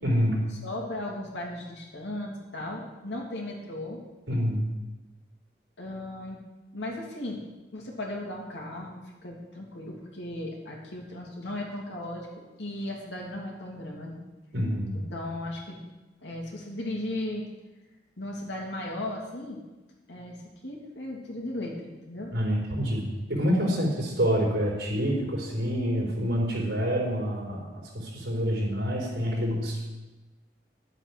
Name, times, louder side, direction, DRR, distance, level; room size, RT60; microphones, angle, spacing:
voice 1, 0.0-0.5 4.3-4.7 14.5-15.0 22.3-27.6 27.9-29.8, equal, 85° right, -3 dB, 4.4 m, -27 dB
voice 2, 0.6-4.0 5.8-6.4 6.7-7.4 7.7-12.3 12.6-14.2 14.9-15.8 16.2-17.4 18.2-19.6 20.1-20.4 20.6-22.3, left 1 dB, 85° left, -1 dB, 2.9 m, -36 dB
11.5 x 8.1 x 6.2 m, 1.1 s
head